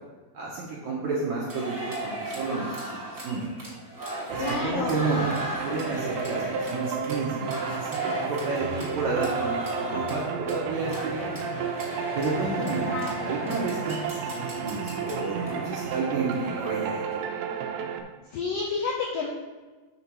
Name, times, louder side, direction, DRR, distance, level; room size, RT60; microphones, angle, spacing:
voice 1, 0.3-3.4 4.3-5.3 5.6-11.4 12.1-12.9 13.2-17.2, right 3 dB, 75° right, -4 dB, 1.7 m, -31 dB
sound 1, 1.5-16.7, right 1 dB, 30° right, 0.9 m, -35 dB
sound 2, 4.3-18.0, right 6 dB, 90° right, 2.9 m, -33 dB
voice 2, 4.4-5.0 12.8-13.3 18.3-19.3, left 4 dB, 85° left, -1 dB, 1.9 m, -30 dB
8.7 x 3.8 x 6.1 m, 1.3 s
omnidirectional pair, 4.9 m